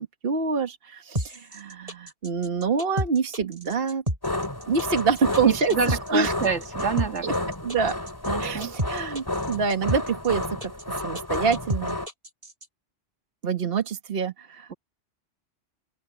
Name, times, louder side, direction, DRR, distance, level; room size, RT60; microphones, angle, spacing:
voice 1, 0.0-4.0 4.7-6.3 7.2-7.3 7.6-7.9 8.4-10.7 11.0-12.0 13.4-14.7, right 5 dB, 55° right, 1.7 m, -26 dB
sound 1, 1.1-12.7, right 1 dB, 30° right, 8.0 m, -31 dB
sound 2, 4.2-12.1, left 1 dB, 20° left, 3.8 m, -31 dB
voice 2, 5.4-7.5 8.3-8.7 14.7-14.8, right 5 dB, 75° right, 2.2 m, -28 dB
open air
omnidirectional pair, 1.2 m